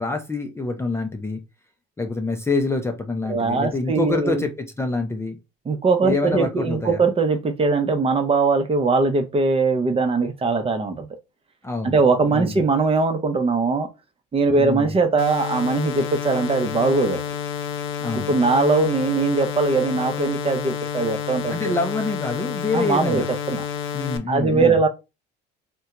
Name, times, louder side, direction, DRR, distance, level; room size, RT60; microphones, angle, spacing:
voice 1, 0.0-1.4 2.0-5.4 6.0-7.0 11.6-12.0 12.3-12.6 14.5-14.9 18.0-18.4 21.5-23.3 23.9-24.8, left 3 dB, 15° left, 0.5 m, -26 dB
voice 2, 3.2-4.5 5.7-11.1 11.8-13.9 14.3-17.2 18.3-21.8 22.7-23.6 24.3-24.9, right 3 dB, 30° right, 0.7 m, -21 dB
sound 1, 15.2-24.2, left 8 dB, 70° left, 0.6 m, -30 dB
2.7 x 2.2 x 3.6 m
supercardioid pair, 85°, 20 cm